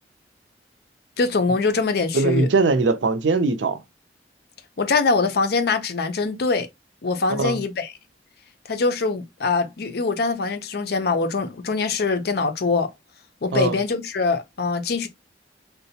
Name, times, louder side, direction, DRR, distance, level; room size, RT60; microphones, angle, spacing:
voice 1, 1.2-2.5 4.8-6.7 7.0-7.9 8.7-12.9 13.4-15.1, left 4 dB, 60° left, 0.5 m, -23 dB
voice 2, 2.1-3.8 7.3-7.6 13.5-13.8, right 3 dB, 80° right, 0.5 m, -20 dB
3.8 x 2.1 x 2.7 m
head